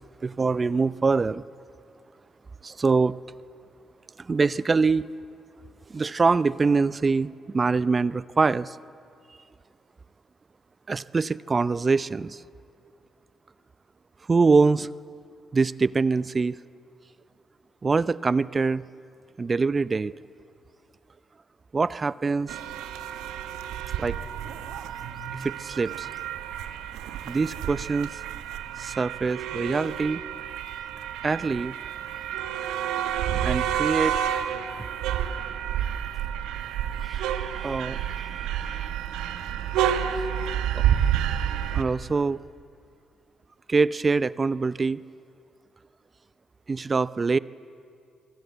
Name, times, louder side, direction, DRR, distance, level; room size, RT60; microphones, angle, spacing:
voice 1, 0.2-1.4 2.6-3.2 4.2-5.1 5.9-8.8 10.9-12.4 14.3-14.9 15.5-16.6 17.8-18.8 19.4-20.1 21.7-22.6 24.0-24.2 25.4-26.1 27.3-28.2 28.8-30.2 31.2-31.8 32.6-32.7 33.4-34.2 37.0-38.9 41.7-42.4 43.7-45.0 46.7-47.4, right 4 dB, 35° right, 18 dB, 0.6 m, -24 dB
sound 1, 22.5-41.8, right 10 dB, 75° right, 1.2 m, -29 dB
26.0 x 24.0 x 8.0 m, 2.4 s
hypercardioid pair, 45°, 0 cm